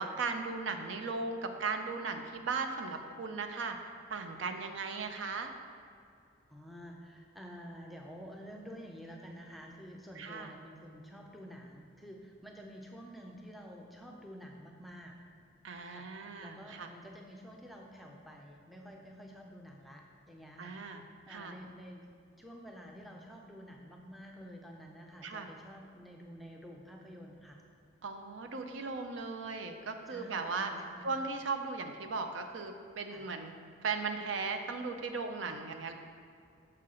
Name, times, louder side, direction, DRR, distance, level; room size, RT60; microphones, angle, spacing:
voice 1, 0.0-3.8 4.1-5.5 10.2-10.6 15.6-16.9 20.6-21.6 25.2-25.5 28.0-30.7 31.0-33.5 33.8-35.9, right 4 dB, 70° right, 6 dB, 0.5 m, -37 dB
voice 2, 6.5-15.2 15.8-22.0 22.4-27.6 30.1-31.2 33.1-33.2 35.4-35.6, equal, ahead, 0 dB, 0.5 m, -50 dB
6.6 x 5.7 x 3.7 m, 2.4 s
head